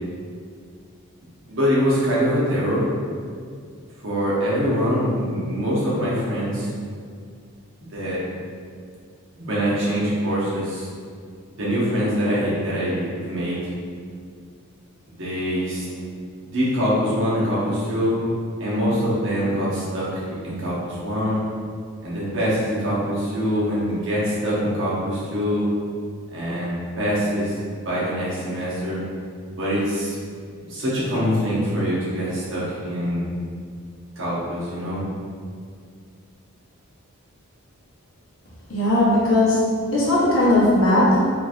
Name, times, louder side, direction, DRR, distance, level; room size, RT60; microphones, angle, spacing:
voice 1, 1.5-2.9 4.0-6.7 7.9-8.2 9.4-10.9 11.6-13.7 15.2-15.9 16.4-18.2 18.6-21.5 22.0-25.7 26.3-27.6 27.8-29.1 29.5-30.2 30.6-33.3 34.2-35.0, equal, 55° right, -8 dB, 0.8 m, -24 dB
voice 2, 38.7-39.6 39.9-41.2, left 1 dB, 60° left, -7 dB, 0.8 m, -18 dB
2.9 x 2.5 x 2.4 m, 2.1 s
head